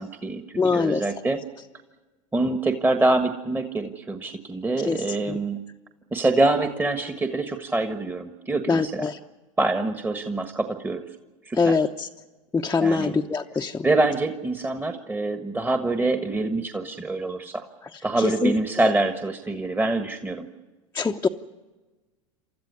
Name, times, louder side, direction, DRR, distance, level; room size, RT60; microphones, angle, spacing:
voice 1, 0.0-0.4 0.7-1.4 2.3-5.6 6.1-9.1 9.6-11.0 11.4-11.8 12.8-13.1 13.8-17.7 18.0-20.5, right 2 dB, 10° right, 7 dB, 1.5 m, -25 dB
voice 2, 0.6-1.0 4.8-5.0 5.3-5.4 8.7-9.2 11.6-12.1 12.5-13.9 18.2-18.5 20.9-21.3, left 4 dB, 15° left, 1 dB, 0.9 m, -23 dB
29.0 x 13.5 x 9.6 m, 1.2 s
hypercardioid pair, 90°, 17 cm